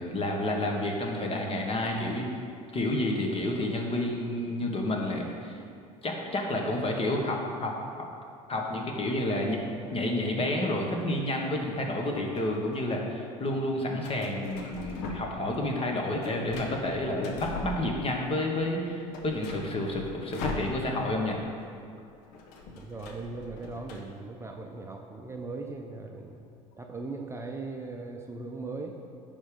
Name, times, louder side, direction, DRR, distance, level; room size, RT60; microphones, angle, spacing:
voice 1, 0.0-2.3 2.7-5.6 6.0-7.7 8.5-9.6 9.9-21.4, left 1 dB, 35° left, 1 dB, 1.4 m, -30 dB
voice 2, 9.3-9.6 10.0-10.2 22.7-26.5 26.8-28.9, right 3 dB, 15° right, 2 dB, 0.6 m, -39 dB
sound 1, 12.1-12.9 14.0-15.5 15.8-18.3 18.6-18.7 19.0-21.2 21.5-21.6 21.9-24.0, left 3 dB, 65° left, 1.0 m, -40 dB
10.0 x 3.7 x 5.1 m, 2.4 s
hypercardioid pair, 75°, 18 cm